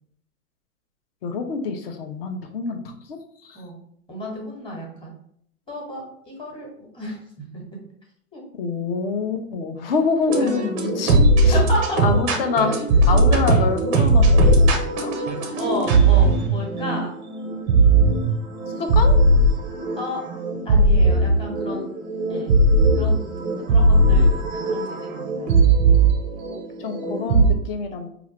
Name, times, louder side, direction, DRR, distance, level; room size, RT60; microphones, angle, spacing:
voice 1, 1.2-2.8 3.1-3.6 8.5-11.6 12.0-12.8 13.1-15.1 18.8-19.2 26.8-28.1, left 4 dB, 40° left, 6 dB, 0.7 m, -26 dB
voice 2, 4.1-5.1 5.7-7.2 7.5-7.6 8.3-8.4 10.3-10.7 11.5-12.0 15.6-17.1 20.0-20.2 20.6-21.9 22.3-22.5 22.9-23.2 23.7-25.5, left 1 dB, 10° left, -2 dB, 1.2 m, -31 dB
sound 1, 10.3-27.5, right 2 dB, 20° right, 0.5 m, -18 dB
4.8 x 2.5 x 2.9 m, 0.68 s
hypercardioid pair, 120°, 44 cm